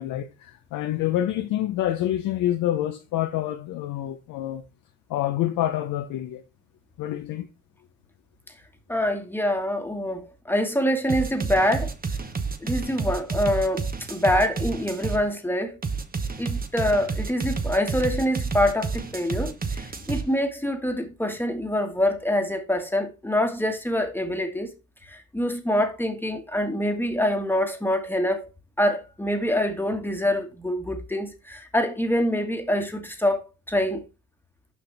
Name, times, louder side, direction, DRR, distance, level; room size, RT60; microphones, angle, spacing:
voice 1, 0.0-4.6 5.1-6.4 7.0-7.5, left 13 dB, 90° left, 0.8 m, -27 dB
voice 2, 8.9-11.9 12.6-15.8 16.4-24.7 25.1-28.5 28.8-34.0, left 1 dB, 5° left, 1.4 m, -25 dB
sound 1, 11.1-15.2 15.8-20.2, right 5 dB, 30° right, 1.0 m, -29 dB
6.3 x 5.8 x 3.3 m
cardioid pair, 90°, 30 cm